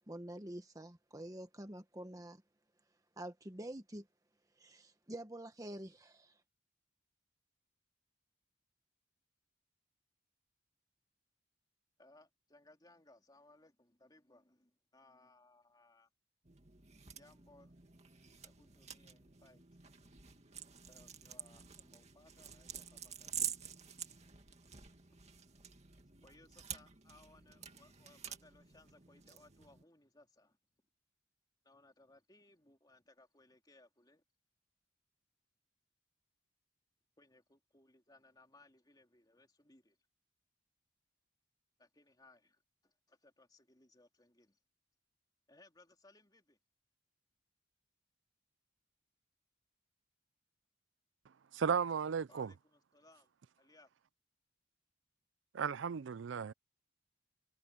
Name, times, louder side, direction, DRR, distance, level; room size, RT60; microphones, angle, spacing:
voice 1, 0.1-2.4 3.2-4.1 4.6-6.4, right 1 dB, 20° right, 1.1 m, -47 dB
voice 2, 12.0-16.1 17.2-17.7 18.3-19.7 20.9-23.5 25.6-25.7 26.2-30.6 31.6-34.2 37.2-40.0 41.8-44.6 45.5-46.6 52.3-53.3 53.6-53.9, left 2 dB, 20° left, 3.5 m, -65 dB
sound 1, 16.5-29.8, right 8 dB, 35° right, 2.3 m, -48 dB
voice 3, 51.5-52.5 55.5-56.5, right 6 dB, 80° right, 0.4 m, -35 dB
head